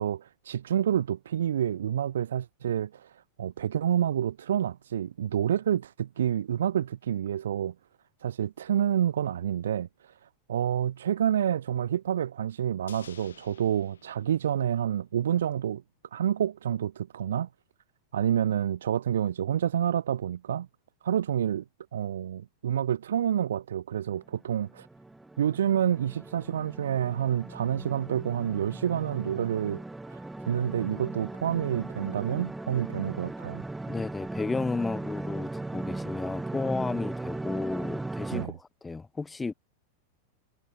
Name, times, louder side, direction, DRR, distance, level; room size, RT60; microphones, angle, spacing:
voice 1, 0.0-7.7 8.2-10.2 10.5-15.8 16.1-17.5 18.1-20.7 21.0-21.6 21.9-24.9 25.4-29.8 30.1-33.6 38.3-38.5, right 10 dB, 65° right, 0.3 m, -28 dB
sound 1, 12.9-15.3 15.5-15.6, left 8 dB, 65° left, 4.8 m, -53 dB
sound 2, 24.3-38.5, right 2 dB, 5° right, 1.7 m, -38 dB
voice 2, 33.9-39.5, left 4 dB, 10° left, 0.5 m, -33 dB
figure-of-eight pair, 90°, 0 cm